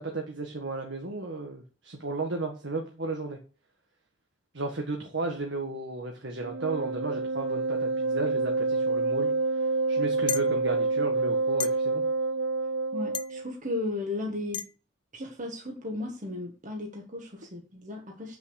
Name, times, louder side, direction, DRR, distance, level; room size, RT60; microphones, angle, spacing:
voice 1, 0.0-3.4 4.5-9.3 9.9-12.0, right 3 dB, 65° right, 1.6 m, -34 dB
Wind instrument woodwind instrument, 6.4-13.4, right 3 dB, 85° right, 0.5 m, -27 dB
sound 1, 10.3-10.5 11.6-11.7 13.1-13.3 14.5-14.7, left 8 dB, 25° left, 0.5 m, -32 dB
voice 2, 12.9-14.6 15.1-18.4, left 2 dB, 40° right, 1.8 m, -35 dB
8.4 x 6.9 x 6.5 m
head